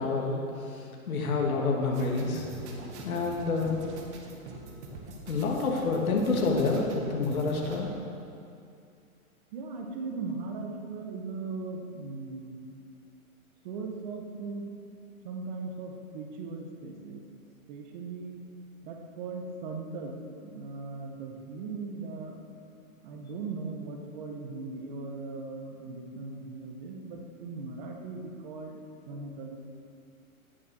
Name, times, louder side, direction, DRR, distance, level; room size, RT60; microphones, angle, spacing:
voice 1, 0.0-2.4 3.0-3.8 5.3-7.9, left 3 dB, 75° left, -1 dB, 3.0 m, -28 dB
sound 1, 1.9-7.8, right 2 dB, 50° right, 2.3 m, -43 dB
voice 2, 9.5-12.7 13.6-14.7 15.2-17.2 17.7-18.4 18.8-20.1 20.4-22.4 23.0-28.8 29.1-29.6, right 4 dB, 35° right, 2 dB, 1.8 m, -38 dB
18.5 x 7.5 x 6.5 m, 2.4 s
hypercardioid pair, 155°, 42 cm